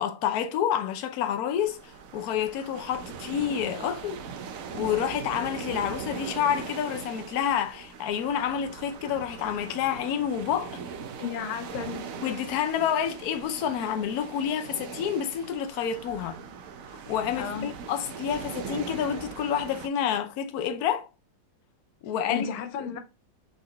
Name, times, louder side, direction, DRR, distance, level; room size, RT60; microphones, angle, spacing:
voice 1, 0.0-4.2 4.7-10.8 12.2-16.4 17.1-21.1 22.0-22.5, left 9 dB, 65° left, 1.0 m, -29 dB
sound 1, 1.6-19.9, right 6 dB, 75° right, 0.8 m, -40 dB
voice 2, 11.2-12.1 17.4-17.7 22.3-23.0, left 7 dB, 85° left, 1.6 m, -33 dB
4.2 x 3.8 x 3.3 m
omnidirectional pair, 2.2 m